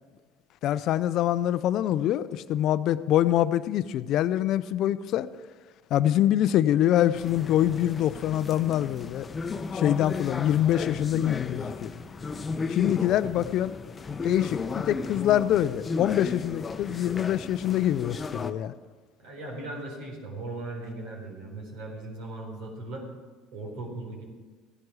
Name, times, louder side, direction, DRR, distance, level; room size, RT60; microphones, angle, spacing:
voice 1, 0.6-5.3 5.9-9.3 9.7-11.9 12.7-13.7 14.2-18.7, left 12 dB, 60° left, 0.5 m, -25 dB
sound 1, 7.1-18.5, left 4 dB, 30° left, 0.8 m, -34 dB
voice 2, 19.2-23.1 23.5-24.2, right 2 dB, 70° right, 4.0 m, -38 dB
15.5 x 10.5 x 4.9 m
hypercardioid pair, 70°, 0 cm